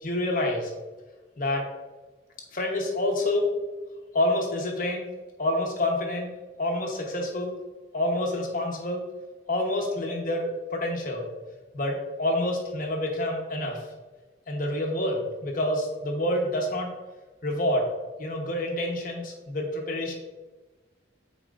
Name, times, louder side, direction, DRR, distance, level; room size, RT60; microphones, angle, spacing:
voice 1, 0.0-0.7 1.4-1.6 2.5-3.5 4.1-5.1 5.4-6.3 6.6-7.5 7.9-9.0 9.5-10.4 10.7-11.3 11.7-13.8 14.5-16.9 17.4-17.8 18.2-20.1, left 1 dB, 45° left, 1 dB, 1.0 m, -27 dB
8.7 x 4.3 x 2.5 m, 1.2 s
head